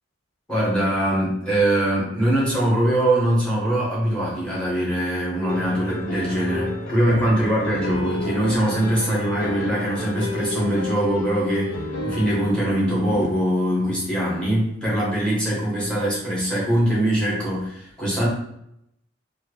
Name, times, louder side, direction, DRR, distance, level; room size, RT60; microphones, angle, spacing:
voice 1, 0.5-18.3, right 1 dB, 5° left, -6 dB, 1.3 m, -22 dB
sound 1, 5.4-12.5, left 2 dB, 85° left, 0.5 m, -31 dB
sound 2, 6.9-13.3, left 1 dB, 35° left, 0.5 m, -41 dB
3.2 x 2.4 x 3.2 m, 0.77 s
head